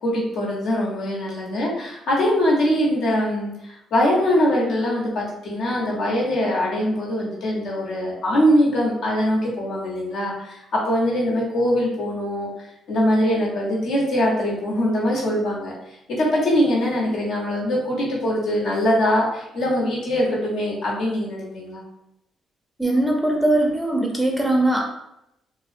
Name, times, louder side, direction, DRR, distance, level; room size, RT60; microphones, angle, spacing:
voice 1, 0.0-10.6 10.9-12.5 12.9-15.7 16.1-21.8, equal, 75° left, -4 dB, 0.8 m, -22 dB
voice 2, 22.8-24.8, right 1 dB, 5° right, 0 dB, 0.4 m, -20 dB
2.3 x 2.1 x 2.5 m, 0.82 s
cardioid pair, 90°, 0 cm